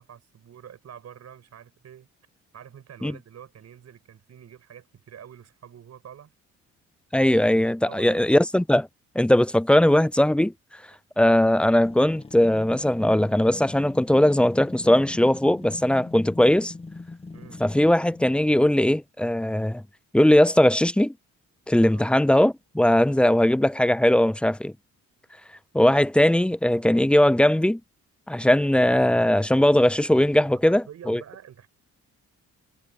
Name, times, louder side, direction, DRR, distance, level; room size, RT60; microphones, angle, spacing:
voice 1, 0.0-2.1 2.5-6.3 7.8-8.3 17.3-17.6 21.8-22.1 30.6-31.7, right 9 dB, 60° right, 5.9 m, -46 dB
voice 2, 7.1-8.9 9.2-10.5 11.2-16.7 17.6-19.8 20.1-21.1 21.7-24.7 25.7-27.8 28.3-31.2, left 1 dB, 5° left, 0.5 m, -19 dB
sound 1, 11.8-18.6, left 3 dB, 20° left, 1.4 m, -41 dB
cardioid pair, 90°, 30 cm